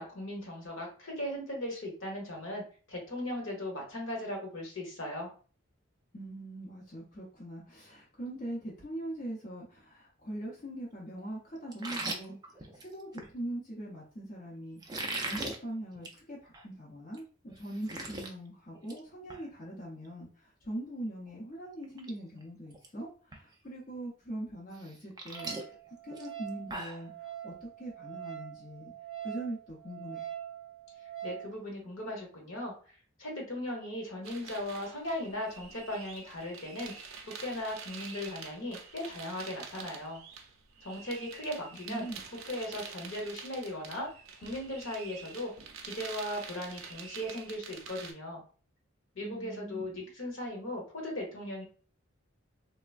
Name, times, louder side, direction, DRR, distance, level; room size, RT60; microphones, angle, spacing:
voice 1, 0.0-2.6 2.9-5.3 31.2-32.7 33.2-36.9 37.4-40.2 40.8-42.1 42.4-44.1 44.4-45.5 45.8-48.4 49.1-51.6, left 1 dB, 65° left, 0 dB, 1.0 m, -38 dB
voice 2, 6.1-25.7 26.0-28.9 29.2-30.3 41.9-42.2 49.2-50.0, right 1 dB, 40° left, -4 dB, 0.6 m, -42 dB
sound 1, 11.7-13.3 14.8-15.6 16.0-16.2 16.5-16.6 17.1-17.2 17.5-18.3 18.7-19.0 19.3-19.4 21.3-21.4 21.8-22.1 22.4-22.9 23.3-23.4 24.8-27.1, right 2 dB, 20° right, 0.4 m, -39 dB
Wind instrument woodwind instrument, 25.3-31.5, right 11 dB, ahead, 0.8 m, -44 dB
sound 2, 34.2-48.1, right 6 dB, 75° right, 0.5 m, -47 dB
3.3 x 2.1 x 2.4 m, 0.40 s
head